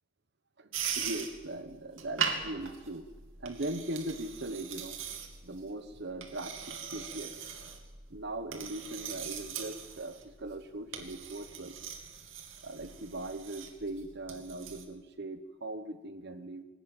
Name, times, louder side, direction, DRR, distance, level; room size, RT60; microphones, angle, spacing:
sound 1, 0.7-14.8, right 7 dB, 90° right, 2.6 m, -40 dB
voice 1, 0.9-3.0 3.4-5.0 5.4-7.3 8.1-11.8 12.6-16.6, right 1 dB, 60° right, 10 dB, 1.2 m, -40 dB
20.5 x 18.0 x 9.1 m, 1.3 s
head